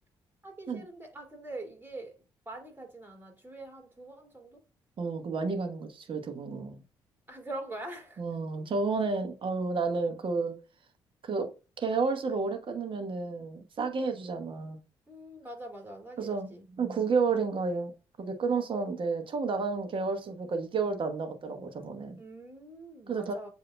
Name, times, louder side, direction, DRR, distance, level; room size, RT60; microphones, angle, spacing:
voice 1, 0.4-4.6 7.3-8.2 15.1-16.7 22.2-23.5, right 2 dB, 15° right, 2.4 m, -44 dB
voice 2, 5.0-6.8 8.2-10.6 11.2-11.5 11.8-14.8 16.2-16.5 16.8-17.9 18.2-22.2 23.1-23.3, right 4 dB, 50° right, 1.1 m, -31 dB
7.7 x 2.8 x 2.2 m
hypercardioid pair, 50°, 11 cm